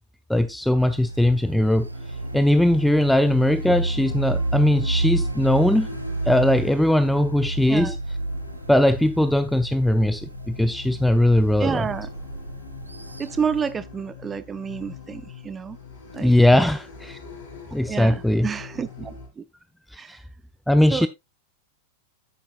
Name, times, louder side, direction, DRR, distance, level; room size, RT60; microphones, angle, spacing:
voice 1, 0.3-1.9 2.3-5.9 6.3-8.0 8.7-11.8 16.2-17.2 17.7-18.5 19.9-20.2 20.7-21.1, left 1 dB, ahead, 0.5 m, -20 dB
sound 1, 0.6-19.3, left 5 dB, 60° left, 3.2 m, -42 dB
sound 2, 0.8-13.7, right 2 dB, 80° right, 0.4 m, -31 dB
voice 2, 11.6-12.1 13.2-15.8 16.1-16.3 17.9-19.4 20.0-20.2 20.9-21.1, right 6 dB, 20° right, 0.8 m, -29 dB
10.5 x 8.6 x 2.4 m
figure-of-eight pair, 90°, 0 cm